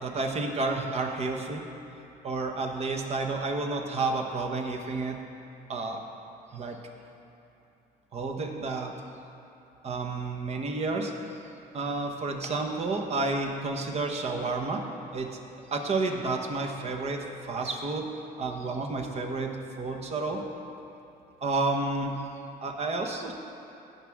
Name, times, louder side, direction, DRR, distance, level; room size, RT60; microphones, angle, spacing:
voice 1, 0.0-1.6 2.2-5.2 5.7-6.0 6.5-6.8 8.1-8.9 9.8-11.1 11.7-14.8 15.1-15.4 15.7-18.1 18.4-20.4 21.4-22.2 22.6-23.5, right 3 dB, 40° right, 3 dB, 1.1 m, -30 dB
16.0 x 6.0 x 3.6 m, 2.9 s
cardioid pair, 110°, 17 cm